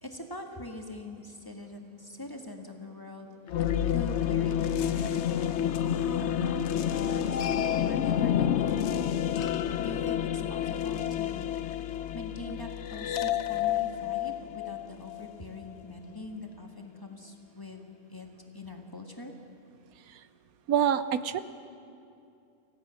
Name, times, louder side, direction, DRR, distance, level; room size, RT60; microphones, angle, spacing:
voice 1, 0.0-3.3 3.9-8.7 9.8-17.8 18.1-18.3 18.5-19.3, left 2 dB, 15° left, 2 dB, 1.7 m, -43 dB
sound 1, 3.5-15.3, left 10 dB, 60° left, 0.8 m, -29 dB
voice 2, 20.7-21.4, right 9 dB, 85° right, 13 dB, 1.2 m, -26 dB
27.0 x 16.5 x 6.4 m, 2.5 s
omnidirectional pair, 1.5 m